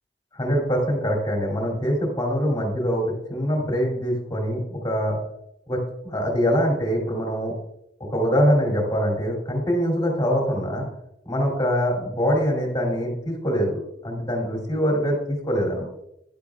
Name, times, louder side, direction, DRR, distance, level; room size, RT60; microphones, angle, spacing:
voice 1, 0.3-5.2 5.7-7.5 8.1-10.9 11.2-15.8, equal, 20° left, -1 dB, 3.2 m, -24 dB
11.5 x 11.0 x 2.4 m, 0.79 s
head